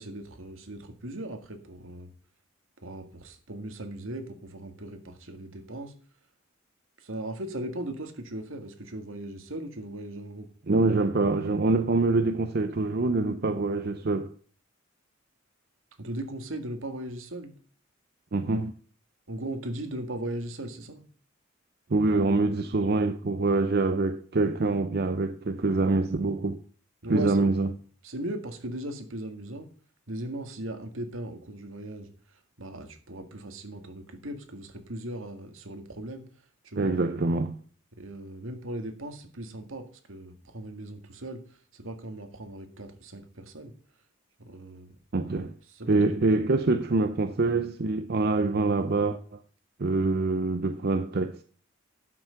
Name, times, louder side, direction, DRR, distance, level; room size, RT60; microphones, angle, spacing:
voice 1, 0.0-2.1 2.8-5.9 7.0-10.5 16.0-17.5 19.3-21.0 27.0-27.5 28.0-29.7 30.1-32.1 32.6-36.3 36.6-37.0 38.0-41.4 41.7-43.7 44.4-44.9 45.7-46.3, right 1 dB, 85° right, 1.9 m, -38 dB
voice 2, 10.7-14.3 18.3-18.7 21.9-26.6 27.1-27.7 36.8-37.6 45.1-45.5 45.9-49.4 49.8-51.4, right 3 dB, 50° right, 0.6 m, -25 dB
11.5 x 6.2 x 5.8 m
head